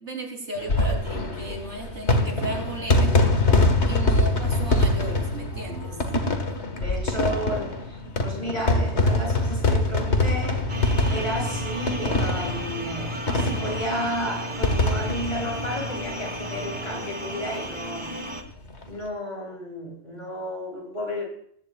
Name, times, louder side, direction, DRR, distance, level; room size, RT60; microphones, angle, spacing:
voice 1, 0.0-3.1 3.9-6.0, right 2 dB, 85° right, 2 dB, 3.9 m, -35 dB
sound 1, 0.6-16.6 16.9-17.0 17.2-17.3 18.6-18.8, left 2 dB, 80° left, 2.0 m, -24 dB
voice 2, 6.7-7.7 8.2-10.6 11.1-18.1 18.9-21.3, equal, 40° left, -2 dB, 7.7 m, -32 dB
sound 2, 10.7-18.4, equal, 25° right, 2.2 m, -33 dB
19.5 x 17.0 x 2.5 m, 0.64 s
omnidirectional pair, 1.1 m